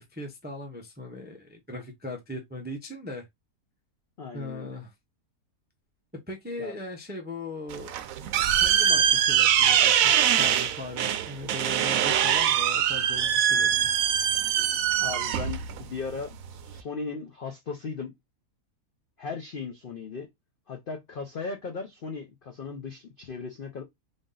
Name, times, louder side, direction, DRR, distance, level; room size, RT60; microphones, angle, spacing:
voice 1, 0.0-3.3 4.3-4.9 6.1-7.9 8.3-13.9, left 1 dB, 15° right, 0.4 m, -39 dB
voice 2, 4.2-4.7 6.6-6.7 15.0-18.1 19.2-20.3 20.7-23.8, left 4 dB, 65° left, 0.5 m, -37 dB
sound 1, 7.7-16.8, right 9 dB, 70° right, 0.9 m, -23 dB
3.6 x 2.6 x 3.7 m
omnidirectional pair, 1.7 m